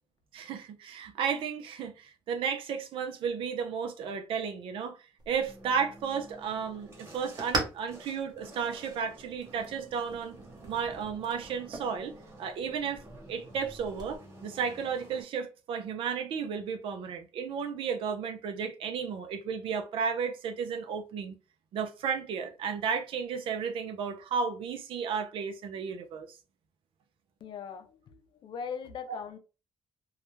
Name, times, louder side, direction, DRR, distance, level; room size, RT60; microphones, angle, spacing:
voice 1, 0.3-5.0 5.3-10.4 10.7-12.1 12.4-13.0 13.3-21.4 21.7-26.4 29.1-29.2, right 6 dB, 80° right, 0.5 m, -33 dB
sound 1, 5.2-14.2, right 2 dB, 50° right, 0.8 m, -41 dB
sound 2, 5.5-15.2, right 1 dB, 30° right, 1.2 m, -52 dB
voice 2, 27.4-29.4, left 6 dB, 65° left, 0.5 m, -40 dB
2.3 x 2.1 x 3.0 m
cardioid pair, 95°, 9 cm